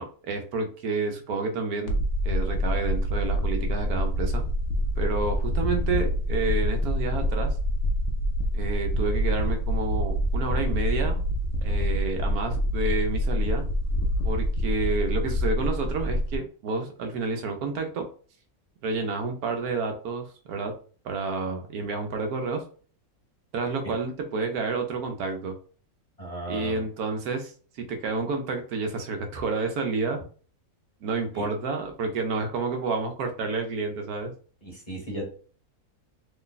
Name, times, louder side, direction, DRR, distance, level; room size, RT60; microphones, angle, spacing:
voice 1, 0.0-2.0 2.2-4.4 5.0-7.5 8.5-11.3 11.6-13.6 14.2-18.1 18.8-20.7 21.0-22.6 23.5-25.6 26.5-27.5 27.8-30.2 31.0-34.3, right 4 dB, 80° right, 5 dB, 1.2 m, -29 dB
sound 1, 1.9-16.4, equal, 65° left, 0.8 m, -26 dB
voice 2, 26.2-26.8 31.3-31.5 34.6-35.3, right 1 dB, 30° left, -3 dB, 0.9 m, -35 dB
3.2 x 2.2 x 3.8 m, 0.41 s
omnidirectional pair, 1.6 m